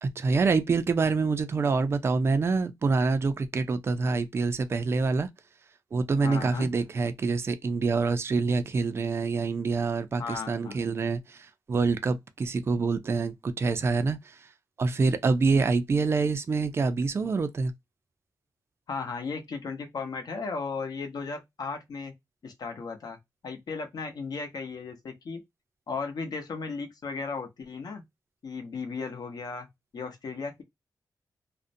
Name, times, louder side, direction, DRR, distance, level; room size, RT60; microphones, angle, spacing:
voice 1, 0.0-5.3 5.9-14.5 14.8-17.7, right 4 dB, 35° right, 0.3 m, -26 dB
voice 2, 6.2-6.7 10.2-10.8 18.9-22.1 22.4-23.2 23.4-25.4 25.9-28.0 28.4-29.7 29.9-30.6, left 4 dB, 65° left, 0.8 m, -35 dB
2.5 x 2.1 x 2.5 m
wide cardioid pair, 140°, 7 cm